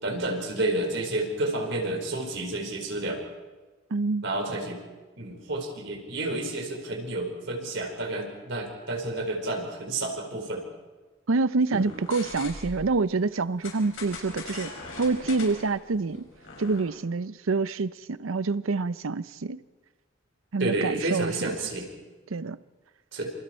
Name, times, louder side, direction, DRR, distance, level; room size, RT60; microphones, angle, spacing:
voice 1, 0.0-3.2 4.2-4.8 5.2-10.6 11.7-11.8 20.6-21.9 23.1-23.3, right 2 dB, 60° right, 4.6 m, -30 dB
voice 2, 3.9-4.2 11.3-14.7 15.0-16.3 16.6-19.6 20.5-21.5 22.3-22.6, right 3 dB, 85° right, 0.7 m, -27 dB
sound 1, 11.7-12.9 13.6-16.8, left 3 dB, 75° left, 5.9 m, -41 dB
28.0 x 27.0 x 4.4 m
head